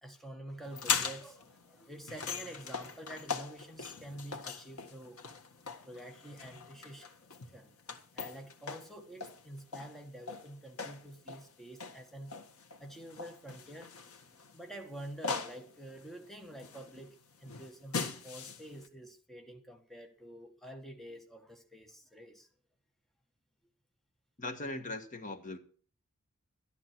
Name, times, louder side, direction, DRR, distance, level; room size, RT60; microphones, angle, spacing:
voice 1, 0.0-5.2 5.8-7.1 7.5-7.8 8.1-12.3 12.8-14.0 14.5-22.5, right 1 dB, ahead, 1.4 m, -48 dB
sound 1, 0.6-18.9, left 5 dB, 80° left, 1.8 m, -41 dB
voice 2, 24.4-25.6, left 2 dB, 35° left, 1.5 m, -39 dB
13.0 x 12.5 x 4.4 m
head